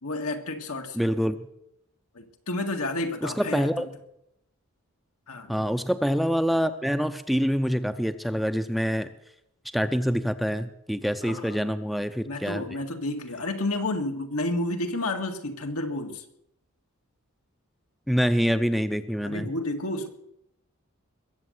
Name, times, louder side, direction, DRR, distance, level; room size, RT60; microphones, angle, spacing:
voice 1, 0.0-1.0 2.2-3.9 5.3-5.5 11.2-11.7 12.3-16.2 19.2-20.1, left 2 dB, 85° left, 4 dB, 1.9 m, -31 dB
voice 2, 0.9-1.4 3.2-3.9 5.5-9.1 9.7-12.6 18.1-19.5, equal, ahead, 9 dB, 0.5 m, -26 dB
21.5 x 7.7 x 8.0 m, 0.80 s
head